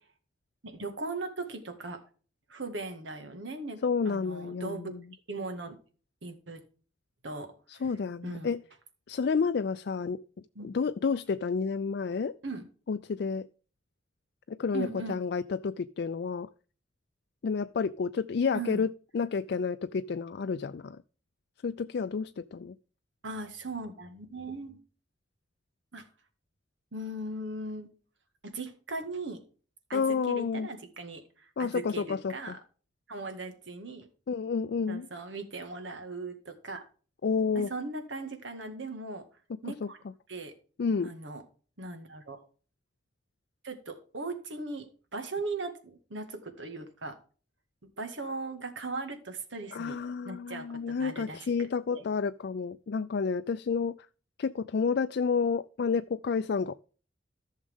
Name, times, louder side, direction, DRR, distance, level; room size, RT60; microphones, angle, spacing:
voice 1, 0.6-2.0 2.5-3.8 4.1-4.9 5.3-5.8 6.2-6.6 7.2-7.8 8.2-8.5 10.6-10.7 12.4-12.7 14.7-15.2 18.5-18.8 23.2-24.8 25.9-26.0 26.9-27.9 28.5-29.4 29.9-32.6 33.1-34.1 34.9-36.8 37.6-39.3 39.6-40.0 40.3-40.5 41.0-41.4 41.8-42.4 43.6-44.9 45.1-47.2 48.0-50.0 50.2-52.0, right 3 dB, 75° right, 1.9 m, -38 dB
voice 2, 3.8-5.0 7.7-8.6 9.1-10.2 10.6-12.3 12.9-13.5 14.5-16.5 17.4-21.0 21.6-22.7 29.9-30.7 31.6-32.6 34.3-35.1 37.2-37.7 39.8-39.9 40.8-41.1 49.7-54.0 54.4-56.8, left 5 dB, 60° left, 0.4 m, -30 dB
14.5 x 6.5 x 3.6 m
head